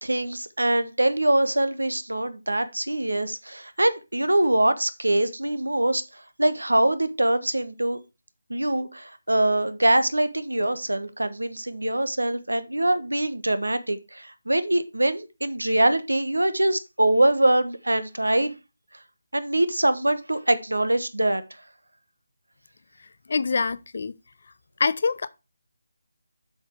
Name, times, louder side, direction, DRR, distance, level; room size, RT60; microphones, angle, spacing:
voice 1, 0.0-8.0 8.5-18.5 19.3-21.4, right 1 dB, 75° right, 1.3 m, -23 dB
voice 2, 23.3-24.1 24.8-25.3, left 4 dB, 45° left, 0.5 m, -24 dB
7.8 x 6.2 x 4.6 m
figure-of-eight pair, 155°, 0 cm